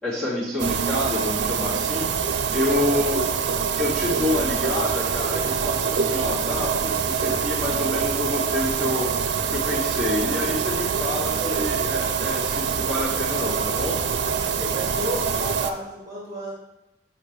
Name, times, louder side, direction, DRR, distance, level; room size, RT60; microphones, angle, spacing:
voice 1, 0.0-2.1 2.5-3.2 3.8-9.1 9.5-14.0, left 2 dB, 5° left, -10 dB, 2.1 m, -28 dB
sound 1, 0.6-15.7, right 6 dB, 85° right, 0.5 m, -25 dB
voice 2, 2.7-3.2 11.4-11.8 14.5-16.5, equal, 20° right, -5 dB, 2.1 m, -33 dB
8.1 x 5.3 x 3.3 m, 0.93 s
head